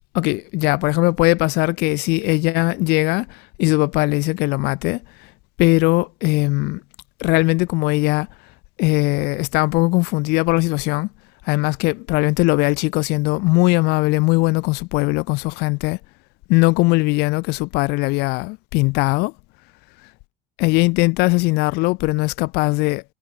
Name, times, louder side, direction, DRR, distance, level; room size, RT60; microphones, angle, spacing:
voice 1, 0.1-5.0 5.6-6.8 7.2-8.3 8.8-11.1 11.4-16.0 16.5-19.3 20.6-23.0, left 25 dB, 65° left, 2.5 m, -19 dB
hypercardioid pair, 80°, 18 cm